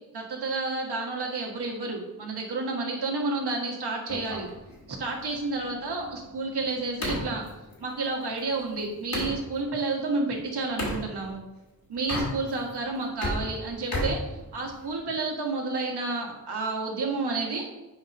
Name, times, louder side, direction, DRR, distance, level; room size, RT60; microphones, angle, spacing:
voice 1, 0.1-4.5 4.9-7.5 7.8-11.4 11.9-14.2 14.5-17.6, right 3 dB, 85° right, 0 dB, 1.8 m, -30 dB
sound 1, 4.1-9.4 10.8-11.0 12.0-12.7 13.0-15.0, left 1 dB, 65° left, 2.6 m, -34 dB
7.6 x 4.3 x 5.4 m, 1.1 s
wide cardioid pair, 85°, 38 cm